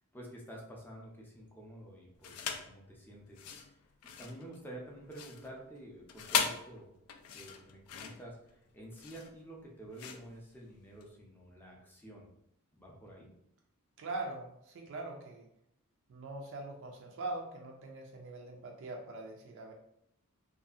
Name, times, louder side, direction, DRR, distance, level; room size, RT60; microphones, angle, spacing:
voice 1, 0.1-3.6 4.2-12.3 12.7-13.3, right 1 dB, 10° left, -2 dB, 0.5 m, -50 dB
sound 1, 2.2-2.7 3.3-11.1, left 7 dB, 75° left, 0.3 m, -39 dB
voice 2, 14.0-15.5 16.1-19.7, right 2 dB, 60° right, 1 dB, 0.4 m, -42 dB
2.6 x 2.4 x 2.4 m, 0.77 s
head